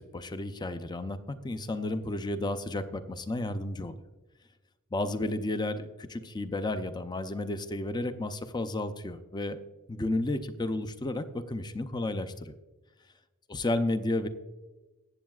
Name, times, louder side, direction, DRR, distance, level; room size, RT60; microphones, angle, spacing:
voice 1, 0.0-3.9 4.9-9.6 9.9-12.5 13.5-14.3, left 2 dB, 20° left, 11 dB, 0.5 m, -32 dB
15.0 x 7.9 x 2.4 m, 1.2 s
head